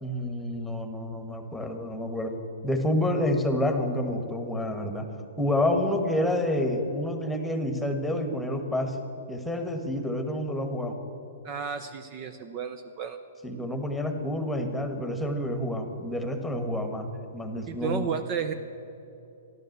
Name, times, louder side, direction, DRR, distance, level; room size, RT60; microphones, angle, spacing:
voice 1, 0.0-2.3 2.6-5.0 5.4-11.0 13.4-18.1, left 1 dB, 5° left, 5 dB, 1.5 m, -28 dB
voice 2, 11.4-13.2 17.7-18.5, right 7 dB, 35° right, 9 dB, 0.7 m, -32 dB
13.5 x 11.5 x 8.0 m, 2.8 s
hypercardioid pair, 140°, 0 cm